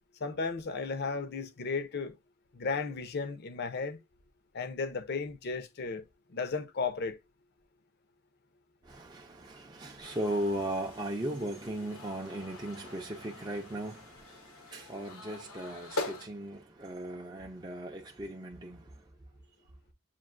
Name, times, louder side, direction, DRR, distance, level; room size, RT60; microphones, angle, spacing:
voice 1, 0.2-2.1 2.5-4.0 4.5-6.0 6.3-7.2, left 4 dB, 50° left, 0.6 m, -34 dB
voice 2, 8.8-19.0, right 1 dB, 20° right, 0.4 m, -37 dB
sound 1, 10.0-16.3, left 2 dB, 85° left, 0.9 m, -43 dB
7.3 x 2.5 x 2.4 m
head